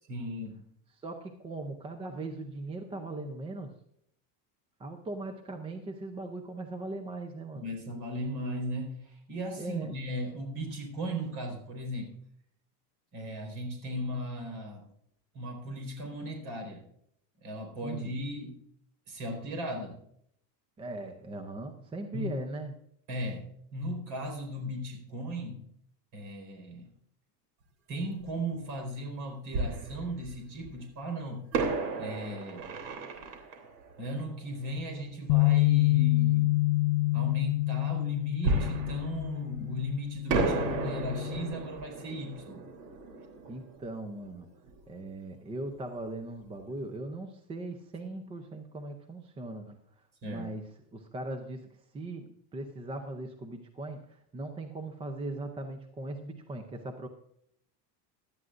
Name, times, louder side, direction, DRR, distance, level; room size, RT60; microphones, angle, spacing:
voice 1, 0.1-0.6 7.5-12.1 13.1-14.9 15.3-16.8 17.4-18.6 19.1-20.0 22.1-22.3 23.1-23.5 23.7-25.6 26.1-26.9 27.9-31.5 32.0-32.6 34.0-36.5 37.1-42.6 50.2-50.5, equal, 40° right, 3 dB, 4.3 m, -37 dB
voice 2, 1.0-3.7 4.8-7.7 9.6-9.9 17.8-18.1 20.8-22.7 43.5-44.5 44.9-49.8 50.2-50.6 50.9-51.7 51.9-57.1, right 2 dB, 10° right, 6 dB, 0.5 m, -39 dB
Fireworks, 28.2-28.3 29.5-30.6 31.5-35.0 38.4-39.9 40.3-44.8 45.1-45.2 45.7-45.9, right 3 dB, 80° right, 3.2 m, -34 dB
Bass guitar, 35.3-41.5, left 20 dB, 85° left, 0.5 m, -27 dB
17.5 x 12.5 x 2.5 m, 0.70 s
cardioid pair, 165°, 46 cm